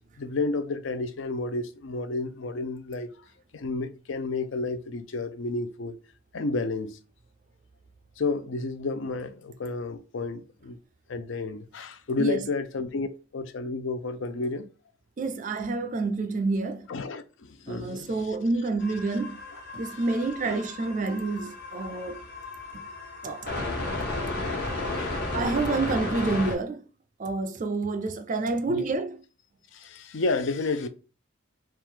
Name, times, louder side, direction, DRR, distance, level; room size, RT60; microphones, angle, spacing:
voice 1, 0.2-3.1 3.5-6.0 6.3-7.0 8.2-10.8 11.1-13.1 13.3-14.7 16.9-18.4 20.4-20.6 21.9-22.1 25.0-25.3 28.7-28.9 29.7-30.9, left 3 dB, 70° left, 0.5 m, -31 dB
voice 2, 15.2-16.9 17.7-19.4 19.7-22.2 23.2-23.7 25.3-26.8 27.2-29.2, right 3 dB, 40° right, 0.4 m, -28 dB
sound 1, 18.8-26.5, left 2 dB, 50° left, 1.3 m, -33 dB
3.6 x 2.4 x 4.5 m
head